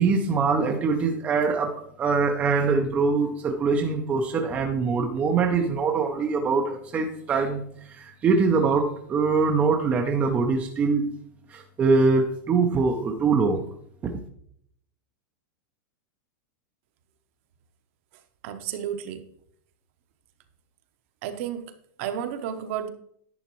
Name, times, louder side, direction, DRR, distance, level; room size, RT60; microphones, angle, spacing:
voice 1, 0.0-11.1 11.5-13.6 14.0-14.1, right 4 dB, 15° right, 3 dB, 0.5 m, -23 dB
voice 2, 18.4-19.3 21.2-22.9, right 9 dB, 40° right, 9 dB, 0.8 m, -32 dB
10.5 x 9.2 x 3.0 m, 0.67 s
supercardioid pair, 175°, 11 cm